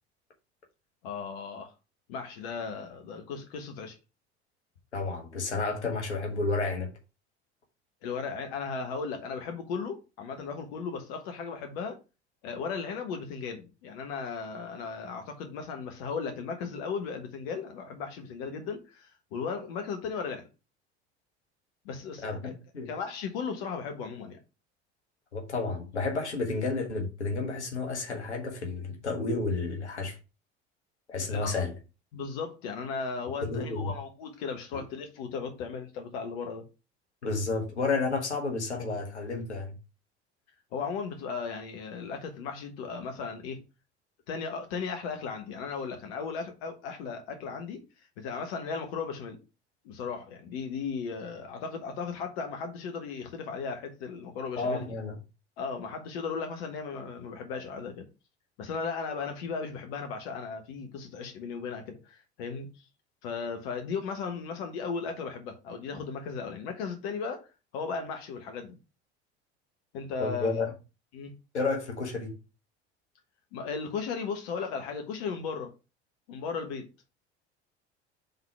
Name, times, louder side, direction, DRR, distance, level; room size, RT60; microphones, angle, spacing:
voice 1, 1.0-1.7 2.1-3.9 8.0-12.0 12.4-20.5 21.8-22.5 22.9-24.4 31.2-31.6 32.1-36.6 40.7-43.6 44.3-47.8 48.2-49.4 49.8-54.9 55.6-58.1 58.6-62.7 63.2-68.8 69.9-70.7 71.1-71.3 73.5-75.7 76.3-76.9, left 5 dB, 65° left, 1.3 m, -36 dB
voice 2, 4.9-6.9 22.2-22.9 25.3-30.2 31.1-31.7 33.5-33.9 37.2-39.8 54.6-55.2 70.2-70.7 71.5-72.3, left 3 dB, 85° left, 1.5 m, -31 dB
5.5 x 3.9 x 5.7 m
figure-of-eight pair, 65°, 33 cm